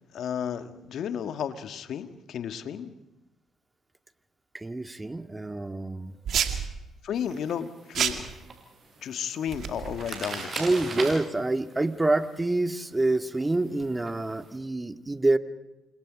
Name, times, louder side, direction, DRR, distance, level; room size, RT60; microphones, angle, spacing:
voice 1, 0.1-2.9 7.0-8.3 9.0-10.6, left 8 dB, 65° left, 9 dB, 1.7 m, -33 dB
voice 2, 4.5-6.1 10.6-15.4, right 2 dB, 20° right, 8 dB, 2.1 m, -27 dB
sound 1, 6.3-6.7 7.9-8.3 9.5-10.1, right 8 dB, 60° right, 2.3 m, -29 dB
sound 2, 7.1-14.6, right 4 dB, 45° right, 6.6 m, -41 dB
29.0 x 26.0 x 5.2 m, 0.98 s
hypercardioid pair, 50°, 0 cm